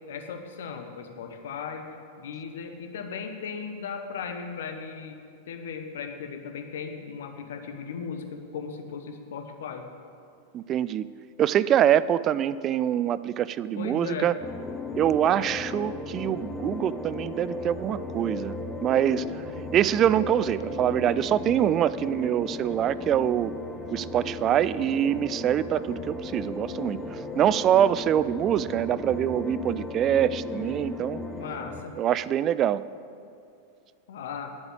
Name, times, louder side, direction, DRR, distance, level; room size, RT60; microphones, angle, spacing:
voice 1, 0.1-1.9 2.2-5.2 5.5-9.8 13.8-14.3 31.4-32.0 34.1-34.5, left 6 dB, 60° left, 5 dB, 1.1 m, -37 dB
voice 2, 10.5-11.1 11.4-14.3 15.0-19.2 19.7-23.5 23.9-31.2 32.0-32.8, right 10 dB, 30° right, 16 dB, 0.3 m, -24 dB
sound 1, 14.4-31.8, left 2 dB, 5° left, 1.0 m, -36 dB
9.8 x 8.0 x 7.9 m, 2.4 s
figure-of-eight pair, 90°, 0 cm